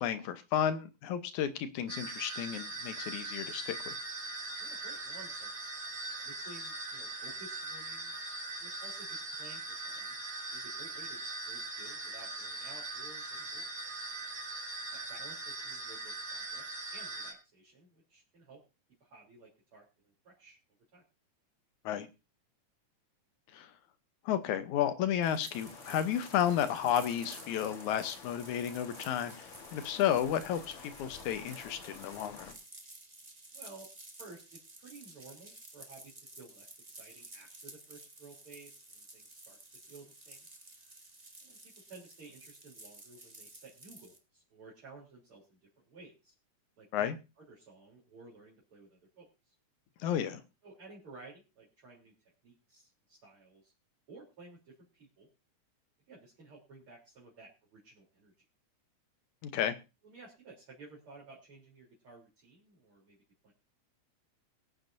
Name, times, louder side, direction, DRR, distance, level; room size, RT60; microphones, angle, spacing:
voice 1, 0.0-3.9 21.9-22.1 23.5-23.7 24.3-30.7 31.0-32.5 46.9-47.2 50.0-50.4 59.4-59.7, left 10 dB, 75° left, 10 dB, 2.3 m, -32 dB
sound 1, 1.9-17.3, right 2 dB, 75° right, 5.5 m, -41 dB
voice 2, 4.6-5.5 6.2-8.1 8.6-10.2 10.5-13.7 14.9-18.6 19.0-20.6 20.9-21.0 33.5-33.9 34.2-39.6 39.9-40.5 41.4-41.6 41.9-46.3 46.8-47.1 47.4-49.5 50.6-52.1 52.4-53.7 54.1-55.3 56.1-58.3 60.0-63.2 63.4-63.5, right 3 dB, 45° right, -5 dB, 4.2 m, -55 dB
sound 2, 25.2-44.2, right 2 dB, 20° right, 1.0 m, -53 dB
sound 3, 25.5-32.5, left 5 dB, 55° left, 2.2 m, -50 dB
22.5 x 8.8 x 2.6 m, 0.28 s
omnidirectional pair, 3.5 m